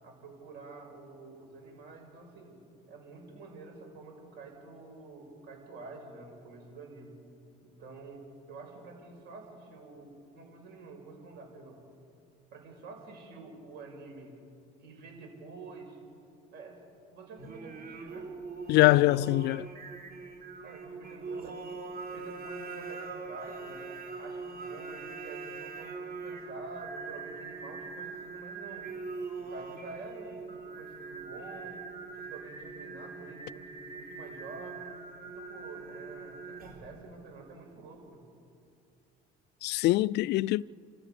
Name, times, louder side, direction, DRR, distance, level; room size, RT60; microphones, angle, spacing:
voice 1, 0.0-2.5 2.9-7.1 7.6-11.8 12.5-14.3 14.8-16.0 16.5-16.8 17.1-18.3 20.6-23.9 24.2-28.9 29.4-31.8 32.1-34.9 35.3-38.2, right 3 dB, 70° right, 6.2 m, -48 dB
Singing, 17.4-37.0, right 4 dB, 55° right, 3.8 m, -42 dB
voice 2, 18.7-19.7 39.6-40.6, left 17 dB, 65° left, 0.4 m, -23 dB
28.0 x 14.5 x 6.9 m
supercardioid pair, 95°, 18 cm